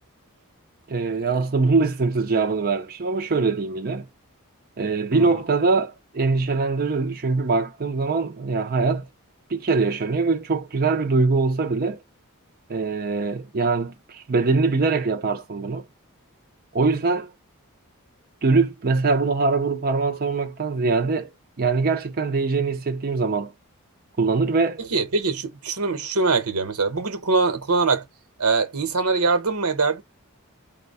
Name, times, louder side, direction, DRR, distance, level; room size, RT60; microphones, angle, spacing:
voice 1, 0.9-4.1 4.8-9.1 9.5-12.0 12.7-15.9 16.7-17.3 18.4-21.3 21.6-23.5 24.2-24.8, right 4 dB, 45° right, 0.6 m, -22 dB
voice 2, 24.8-28.0 28.4-30.0, right 4 dB, 85° right, 1.1 m, -23 dB
4.3 x 2.3 x 4.1 m
head